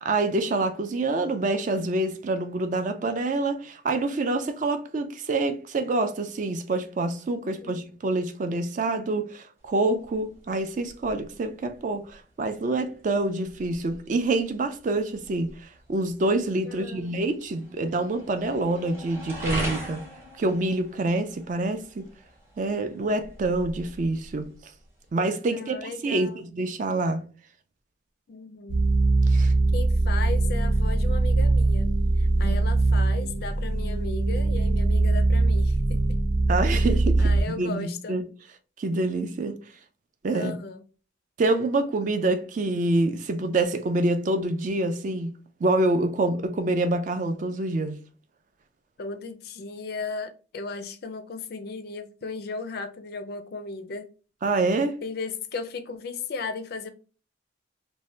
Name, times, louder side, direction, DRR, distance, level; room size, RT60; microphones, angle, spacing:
voice 1, 0.0-20.0 20.4-22.1 22.6-24.7 25.1-27.2 29.3-29.5 32.4-32.6 36.5-38.2 38.8-39.6 40.2-40.5 41.4-48.0 54.4-55.0, right 2 dB, 40° right, 0.3 m, -26 dB
voice 2, 7.3-7.8 16.6-17.2 25.5-26.5 28.3-28.8 29.7-36.2 36.7-36.9 37.2-38.2 40.3-40.8 49.0-54.0 55.0-56.9, left 4 dB, 50° left, 0.4 m, -36 dB
sound 1, 9.6-25.1, right 1 dB, 15° right, 0.7 m, -41 dB
sound 2, 28.7-37.4, right 2 dB, 80° right, 0.6 m, -22 dB
2.6 x 2.1 x 3.1 m
head